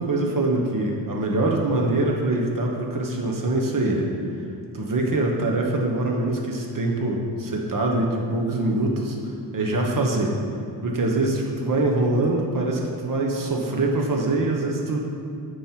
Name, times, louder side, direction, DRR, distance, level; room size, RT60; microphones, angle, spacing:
voice 1, 0.0-4.1 4.7-9.2 9.5-10.4 10.8-15.1, right 2 dB, 50° right, 0 dB, 1.2 m, -24 dB
9.2 x 5.5 x 4.6 m, 2.3 s
wide cardioid pair, 125°, 42 cm